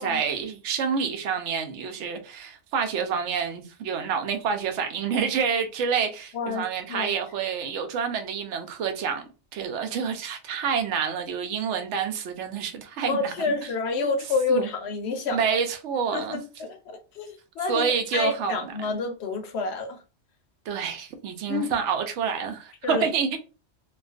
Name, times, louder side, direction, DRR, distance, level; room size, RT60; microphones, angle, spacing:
voice 1, 0.0-9.3 9.5-13.6 14.5-14.7 15.3-16.4 17.7-18.6 20.7-23.4, right 6 dB, 75° right, 0.9 m, -28 dB
voice 2, 6.3-7.1 13.1-15.4 16.1-20.0 21.5-21.7 22.8-23.1, left 4 dB, 65° left, 0.8 m, -29 dB
2.4 x 2.3 x 2.4 m
omnidirectional pair, 1.3 m